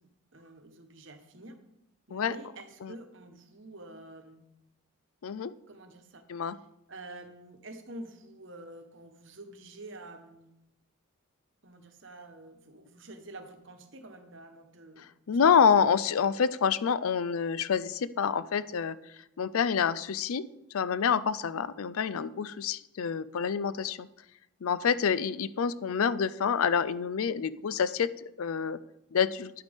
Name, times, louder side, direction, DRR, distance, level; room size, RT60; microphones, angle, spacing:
voice 1, 0.0-1.6 2.1-4.4 5.7-6.2 6.9-10.6 11.6-16.0, right 2 dB, 60° right, 6 dB, 1.1 m, -48 dB
voice 2, 5.2-5.5 6.3-6.6 15.3-19.0 19.4-20.4 20.7-24.1 24.6-28.1 28.4-28.8 29.1-29.5, left 6 dB, 80° left, 16 dB, 0.4 m, -27 dB
10.5 x 9.1 x 3.5 m, 0.85 s
head